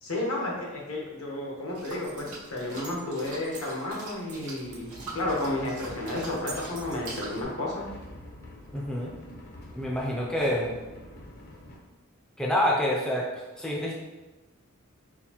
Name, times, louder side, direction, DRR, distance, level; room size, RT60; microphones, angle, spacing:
voice 1, 0.0-7.9, left 1 dB, 70° left, -2 dB, 0.9 m, -32 dB
sound 1, 1.7-7.4, right 3 dB, 90° right, 0.8 m, -42 dB
sound 2, 4.6-11.8, left 1 dB, 50° left, 0.6 m, -47 dB
voice 2, 8.7-9.1 9.7-10.7 12.4-13.3 13.6-13.9, left 1 dB, 5° left, -4 dB, 0.4 m, -27 dB
3.9 x 2.4 x 2.8 m, 1.1 s
head